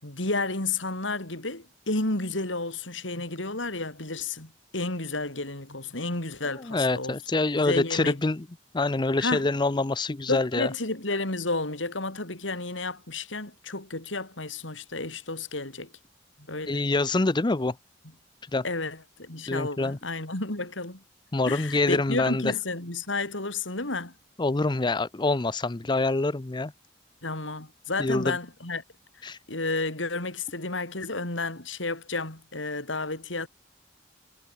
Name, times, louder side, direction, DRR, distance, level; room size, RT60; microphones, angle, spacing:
voice 1, 0.0-7.1 7.6-8.2 9.2-9.4 10.3-15.9 16.4-16.8 18.6-21.0 21.5-24.1 27.2-28.8 29.5-33.5, left 3 dB, 90° left, 5.3 m, -31 dB
voice 2, 6.7-8.4 8.7-10.7 16.7-17.8 18.5-18.6 19.5-20.0 21.3-22.4 24.4-26.7 28.0-28.4 29.2-29.4, left 2 dB, 25° left, 0.6 m, -25 dB
head